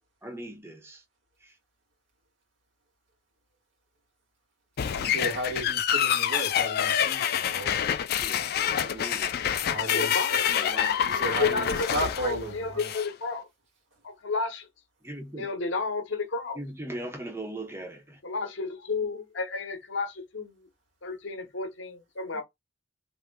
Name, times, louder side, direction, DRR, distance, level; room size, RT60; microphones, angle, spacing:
voice 1, 0.2-1.0 1.4-1.6 8.1-9.7 10.5-11.0 15.0-15.5 16.5-18.2 22.3-22.4, right 1 dB, 15° right, 0.9 m, -40 dB
sound 1, 4.8-13.1, left 9 dB, 55° left, 0.4 m, -27 dB
voice 2, 4.9-7.8 9.7-10.2 11.0-12.9, right 1 dB, 90° right, 2.0 m, -34 dB
voice 3, 9.8-10.5 11.2-13.5 14.0-14.7 15.4-16.6 18.2-20.7 21.0-22.4, left 4 dB, 80° left, 0.9 m, -32 dB
3.5 x 2.6 x 2.2 m
head